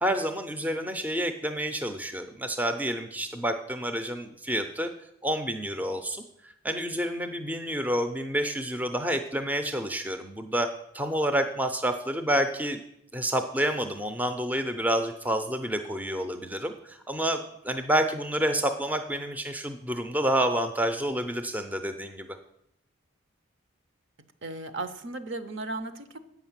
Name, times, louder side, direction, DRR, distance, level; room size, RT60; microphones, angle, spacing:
voice 1, 0.0-4.9 5.2-6.2 6.6-10.7 10.9-12.8 13.1-17.4 17.6-22.4, right 1 dB, 10° right, 7 dB, 0.4 m, -28 dB
voice 2, 24.4-26.2, right 2 dB, 60° right, 10 dB, 0.7 m, -35 dB
8.4 x 5.9 x 7.2 m, 0.77 s
head